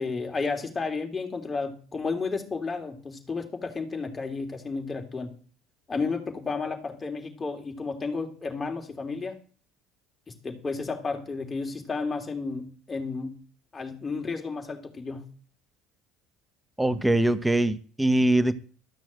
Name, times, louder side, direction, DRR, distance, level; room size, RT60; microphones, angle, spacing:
voice 1, 0.0-5.3 5.9-9.4 10.3-13.4 13.7-15.3, left 4 dB, 25° left, 3 dB, 3.3 m, -32 dB
voice 2, 16.8-18.6, right 1 dB, 10° right, 13 dB, 1.0 m, -22 dB
13.5 x 6.1 x 7.8 m, 0.42 s
hypercardioid pair, 70°, 0 cm